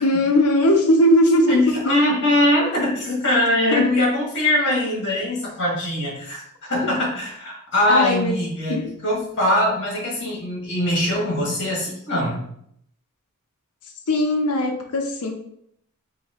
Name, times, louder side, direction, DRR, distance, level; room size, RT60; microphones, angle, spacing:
voice 1, 0.0-1.6 3.7-3.9 7.9-8.4 8.7-8.8 14.1-15.3, left 1 dB, 70° left, 3 dB, 0.6 m, -19 dB
voice 2, 1.5-12.5, left 1 dB, 55° left, -3 dB, 1.7 m, -22 dB
5.6 x 2.8 x 3.0 m, 0.71 s
head